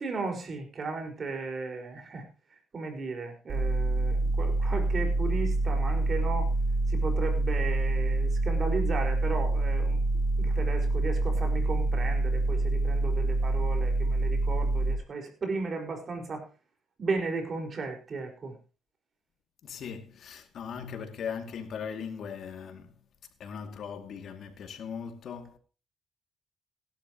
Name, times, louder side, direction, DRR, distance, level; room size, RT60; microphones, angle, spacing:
voice 1, 0.0-2.2 2.7-6.5 6.9-10.0 10.4-16.5 17.0-18.6, right 4 dB, 45° right, 5.0 m, -35 dB
sound 1, 3.5-14.9, right 2 dB, 60° right, 4.3 m, -26 dB
voice 2, 19.6-22.9 23.4-25.6, left 7 dB, 65° left, 2.4 m, -39 dB
17.5 x 12.0 x 3.0 m
cardioid pair, 90°, 0 cm